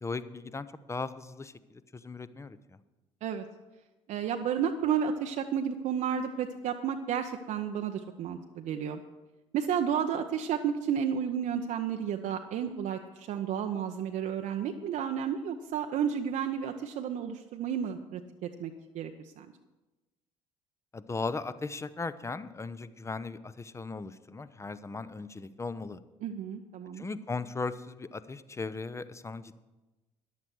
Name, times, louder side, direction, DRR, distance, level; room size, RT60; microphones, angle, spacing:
voice 1, 0.0-2.8 20.9-26.0 26.9-29.6, left 3 dB, 15° left, 14 dB, 0.7 m, -38 dB
voice 2, 4.1-9.0 9.5-19.1 19.4-19.5 26.2-27.1, right 8 dB, 50° right, 4 dB, 0.7 m, -32 dB
14.0 x 10.5 x 4.6 m, 1.1 s
figure-of-eight pair, 55°, 16 cm